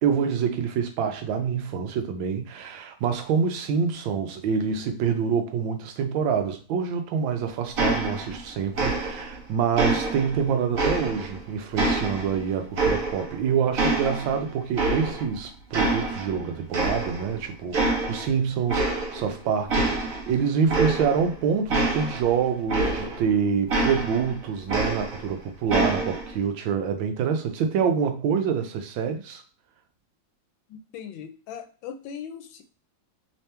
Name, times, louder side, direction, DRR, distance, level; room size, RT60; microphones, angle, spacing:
voice 1, 0.0-29.4, right 6 dB, 90° right, 1.4 m, -26 dB
sound 1, 7.8-8.5 8.7-9.4 9.8-11.4 11.8-13.4 13.8-15.4 15.7-16.4 16.7-17.4 17.7-18.3 18.7-19.3 19.7-23.3 23.7-25.3 25.7-26.3, right 2 dB, 55° right, 1.2 m, -26 dB
voice 2, 30.7-32.6, left 8 dB, 85° left, 1.4 m, -39 dB
3.6 x 2.9 x 3.3 m
omnidirectional pair, 2.1 m